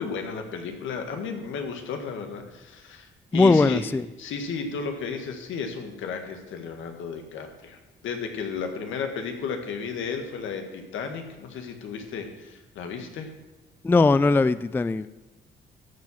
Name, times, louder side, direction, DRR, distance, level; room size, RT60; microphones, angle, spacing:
voice 1, 0.0-3.8 4.2-7.8 8.0-13.3, left 5 dB, 80° left, 5 dB, 1.7 m, -33 dB
voice 2, 3.3-4.0 13.8-15.1, left 3 dB, 10° left, 16 dB, 0.3 m, -19 dB
13.0 x 4.8 x 7.2 m, 1.1 s
cardioid pair, 90°, 20 cm